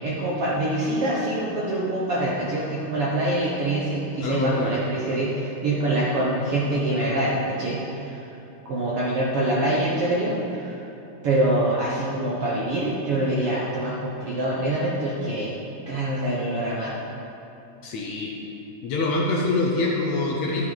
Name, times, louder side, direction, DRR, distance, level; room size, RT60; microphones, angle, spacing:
voice 1, 0.0-8.2 8.6-10.8 11.2-15.5 15.9-17.0, right 1 dB, 60° right, -6 dB, 1.6 m, -25 dB
voice 2, 4.2-4.8 17.8-18.3 18.8-20.7, left 3 dB, 70° left, -2 dB, 1.9 m, -25 dB
11.5 x 8.8 x 4.0 m, 3.0 s
omnidirectional pair, 3.9 m